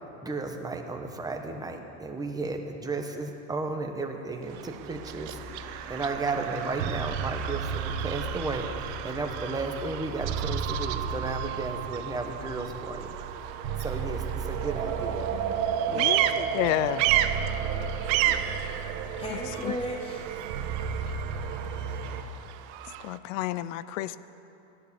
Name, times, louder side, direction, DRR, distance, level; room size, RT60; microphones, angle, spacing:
voice 1, 0.2-13.4 13.8-15.3 17.5-17.9, right 3 dB, 10° right, 4 dB, 1.2 m, -34 dB
Bird vocalization bird call bird song, 4.4-23.2, right 13 dB, 65° right, 0.8 m, -34 dB
sound 1, 4.6-22.2, right 6 dB, 85° right, 1.4 m, -33 dB
voice 2, 13.8-14.2 15.8-16.2 18.0-20.3, equal, 15° left, -2 dB, 1.4 m, -38 dB
voice 3, 15.9-17.0 23.0-24.2, left 14 dB, 85° left, 15 dB, 0.6 m, -30 dB
15.5 x 11.0 x 7.0 m, 2.8 s
supercardioid pair, 140°, 37 cm